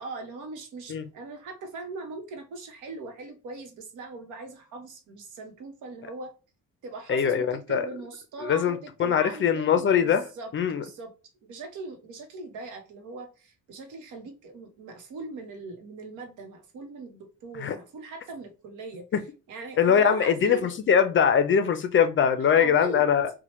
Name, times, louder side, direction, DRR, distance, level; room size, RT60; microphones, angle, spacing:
voice 1, 0.0-6.3 6.8-10.5 10.8-11.1 11.4-19.0 19.5-20.7 22.4-23.0, right 3 dB, 80° right, 0.9 m, -40 dB
voice 2, 7.1-7.9 8.4-10.2 10.5-10.8 17.6-17.8 19.8-23.3, left 7 dB, 40° left, 0.4 m, -22 dB
2.8 x 2.1 x 3.0 m
cardioid pair, 90°, 30 cm